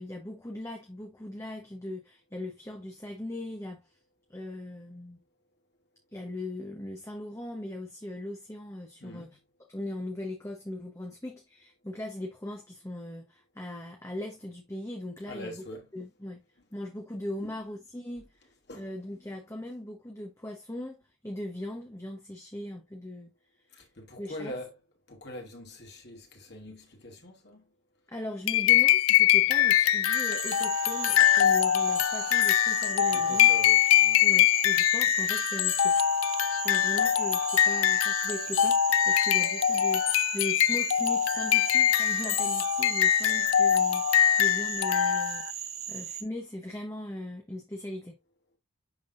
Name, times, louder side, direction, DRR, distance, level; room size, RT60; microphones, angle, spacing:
voice 1, 0.0-3.8 4.3-5.2 6.1-9.3 9.7-15.6 15.9-16.4 16.7-18.3 18.7-23.3 24.2-24.6 28.1-33.5 34.2-36.0 36.6-48.2, left 1 dB, 15° left, 1.0 m, -39 dB
voice 2, 15.2-15.9 17.4-17.6 18.7-18.9 19.3-19.4 23.7-24.8 25.1-27.7 28.7-28.8 33.1-34.3, left 1 dB, 50° left, 2.3 m, -43 dB
sound 1, 28.5-45.5, left 11 dB, 80° left, 0.4 m, -23 dB
Cricket / Frog, 30.1-46.2, right 9 dB, 85° right, 1.7 m, -38 dB
10.5 x 3.6 x 2.6 m
head